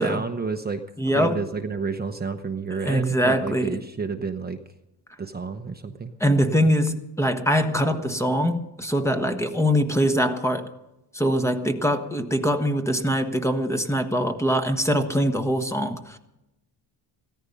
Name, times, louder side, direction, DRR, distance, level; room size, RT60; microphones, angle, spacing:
voice 1, 0.0-4.6 5.2-6.2, right 4 dB, 20° right, 0.9 m, -30 dB
voice 2, 1.0-1.4 2.8-3.8 6.2-10.7 11.1-16.2, equal, 5° left, 1.2 m, -23 dB
16.0 x 14.0 x 5.3 m
cardioid pair, 100°, 42 cm